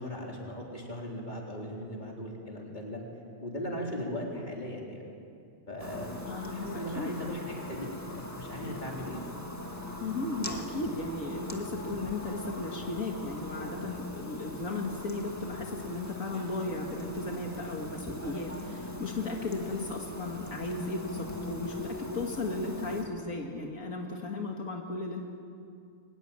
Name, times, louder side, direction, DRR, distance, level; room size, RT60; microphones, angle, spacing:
voice 1, 0.0-3.0 3.4-5.0 5.7-6.2 6.5-7.9 8.3-9.2, equal, 35° left, -2 dB, 4.0 m, -38 dB
sound 1, 5.8-23.0, left 2 dB, 10° left, 2.0 m, -40 dB
voice 2, 6.3-7.2 10.0-25.2, left 2 dB, 80° left, 1 dB, 2.3 m, -35 dB
23.0 x 20.5 x 8.9 m, 2.4 s
omnidirectional pair, 1.4 m